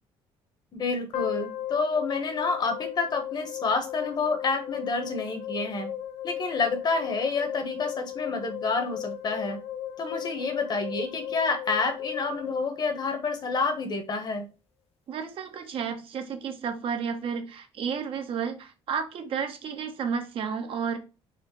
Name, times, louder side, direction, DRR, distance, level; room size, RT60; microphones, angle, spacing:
voice 1, 0.7-5.9 6.2-9.6 10.0-14.5, left 4 dB, 40° left, 7 dB, 1.1 m, -28 dB
sound 1, 1.1-13.4, left 11 dB, 65° left, 0.8 m, -36 dB
voice 2, 15.1-21.0, right 6 dB, 55° right, 6 dB, 0.9 m, -32 dB
4.2 x 2.5 x 4.5 m, 0.31 s
cardioid pair, 120°, 11 cm